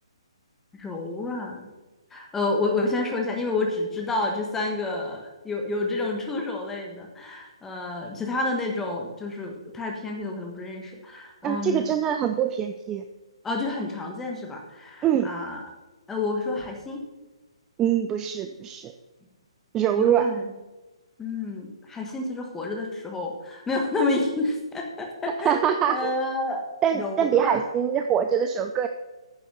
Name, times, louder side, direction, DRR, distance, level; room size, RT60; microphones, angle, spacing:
voice 1, 0.7-1.7 2.1-12.0 13.4-15.6 16.1-17.0 19.9-20.5 21.2-26.6 26.9-27.6, left 2 dB, 10° left, 2 dB, 1.3 m, -29 dB
voice 2, 11.4-13.0 15.0-15.3 17.8-18.9 19.7-20.3 25.4-26.1 26.8-28.9, right 9 dB, 15° right, 7 dB, 0.4 m, -24 dB
9.7 x 6.9 x 5.5 m, 1.2 s
figure-of-eight pair, 130°, 3 cm